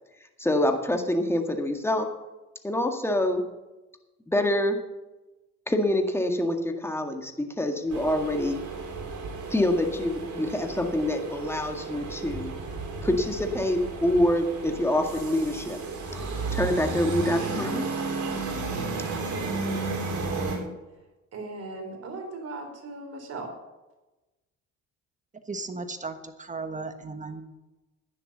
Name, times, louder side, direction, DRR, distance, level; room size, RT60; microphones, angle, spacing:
voice 1, 0.4-2.1 2.6-3.4 4.3-4.8 5.7-8.6 9.5-12.5 13.0-15.8 16.5-17.8, left 1 dB, 10° left, 4 dB, 1.9 m, -26 dB
sound 1, 7.9-20.6, right 3 dB, 70° right, 4.0 m, -33 dB
voice 2, 19.3-20.7 21.3-23.5, right 3 dB, 55° right, 4 dB, 3.9 m, -38 dB
voice 3, 25.5-27.4, right 3 dB, 25° right, 8 dB, 1.4 m, -35 dB
11.0 x 9.8 x 7.2 m, 1.1 s
cardioid pair, 90°, 30 cm